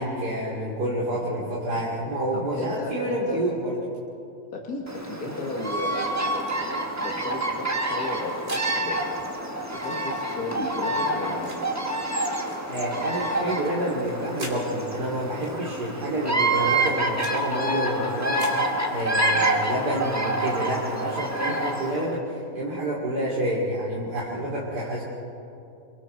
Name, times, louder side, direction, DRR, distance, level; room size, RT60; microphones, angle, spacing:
voice 1, 0.0-3.7 12.7-18.5 18.9-25.0, right 1 dB, 80° right, -5 dB, 3.5 m, -28 dB
voice 2, 1.1-1.8 2.3-3.4 4.5-9.0 9.7-11.6 19.2-19.5 21.5-21.6 24.4-24.5, left 2 dB, 65° left, 0 dB, 2.3 m, -35 dB
Bird vocalization bird call bird song, 4.9-22.1, right 1 dB, 10° right, 1.5 m, -27 dB
sound 1, 6.3-6.6 7.9-8.7 9.8-10.0 11.1-11.6 12.5-12.7 13.9-14.6 15.4-15.6 16.6-17.4 18.2-18.6, right 2 dB, 55° right, 3.5 m, -42 dB
28.0 x 23.5 x 4.5 m, 2.8 s
omnidirectional pair, 1.7 m